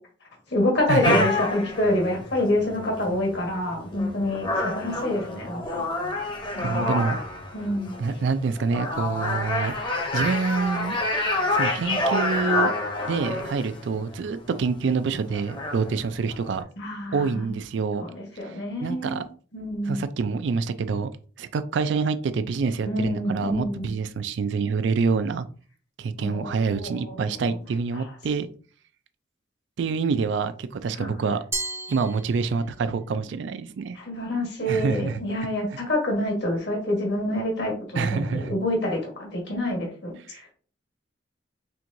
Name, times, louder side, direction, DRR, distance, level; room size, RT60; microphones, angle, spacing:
voice 1, 0.5-5.8 6.5-7.0 7.5-8.0 16.8-17.5 18.0-19.2 19.5-20.1 22.8-23.9 26.2-27.3 27.9-28.1 30.9-31.1 33.9-40.5, left 1 dB, 65° left, 0 dB, 1.3 m, -27 dB
sound 1, 1.0-16.6, left 2 dB, 25° left, 0.7 m, -28 dB
voice 2, 6.6-7.2 8.0-9.7 10.1-11.0 11.5-12.7 13.1-16.6 17.1-18.0 18.4-19.2 19.9-21.1 21.4-25.5 26.0-28.5 29.8-31.4 31.9-34.0 34.7-35.2 38.0-38.5 40.3-40.4, right 5 dB, 75° right, 12 dB, 0.4 m, -26 dB
Glass, 31.5-33.0, right 3 dB, 15° right, 0.5 m, -34 dB
4.5 x 3.5 x 2.6 m, 0.41 s
head